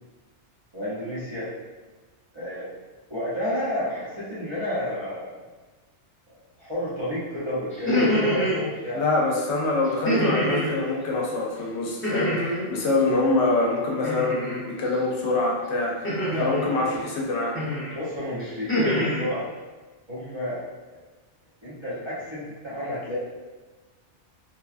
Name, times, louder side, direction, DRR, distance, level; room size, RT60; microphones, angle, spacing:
voice 1, 0.7-1.5 2.3-2.7 3.1-5.3 6.6-9.0 16.3-17.0 17.9-19.4 20.1-20.6 20.9-21.0 21.6-23.2, left 1 dB, 30° right, -11 dB, 0.7 m, -31 dB
sound 1, 7.7-8.6 10.0-10.7 12.0-12.7 14.0-14.6 16.0-16.7 17.5-17.9 18.4-19.2, equal, 15° left, 0.7 m, -25 dB
voice 2, 8.9-16.1 16.4-17.6, left 2 dB, 75° left, -2 dB, 0.9 m, -25 dB
2.8 x 2.3 x 2.4 m, 1.3 s
omnidirectional pair, 1.2 m